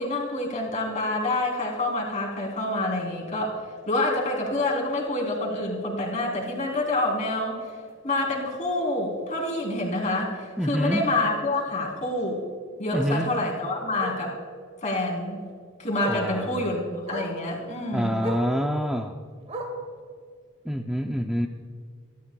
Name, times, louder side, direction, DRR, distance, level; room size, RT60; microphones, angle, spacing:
voice 1, 0.0-3.6 3.9-7.6 8.0-12.4 12.8-14.4 14.8-15.4 15.8-18.2, left 2 dB, 35° left, -1 dB, 3.6 m, -27 dB
Bark, 6.5-6.6 7.0-7.2 7.5-7.6 7.9-8.0 9.4-9.5 12.0-12.1 12.9-13.2 14.0-14.3 15.5-15.6 16.0-16.3 17.1-17.4 18.2-18.5 19.5-19.9 20.9-21.0, equal, 30° right, 2.0 m, -34 dB
voice 2, 10.6-11.1 12.9-13.3 16.1-16.7 17.9-19.2 20.6-21.5, equal, ahead, 3 dB, 0.5 m, -27 dB
27.5 x 13.0 x 2.3 m, 2.1 s
head